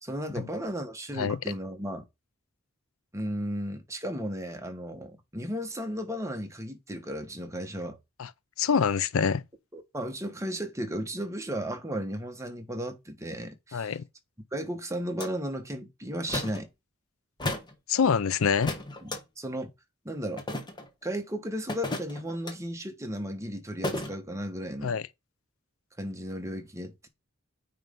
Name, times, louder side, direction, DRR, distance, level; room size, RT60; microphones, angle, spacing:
voice 1, 0.0-2.1 3.1-8.0 9.7-13.9 14.5-16.7 19.0-19.7 20.0-20.4 21.0-25.0 26.0-27.1, equal, 15° right, 1.3 m, -35 dB
voice 2, 8.6-9.4 13.7-14.0 17.9-18.7 24.8-25.0, left 6 dB, 75° left, 0.5 m, -25 dB
sound 1, 15.2-15.3 16.3-16.6 17.4-17.7 18.6-19.2 20.4-20.9 21.7-22.5 23.8-24.1, left 2 dB, 20° left, 1.2 m, -33 dB
9.2 x 3.3 x 5.3 m
head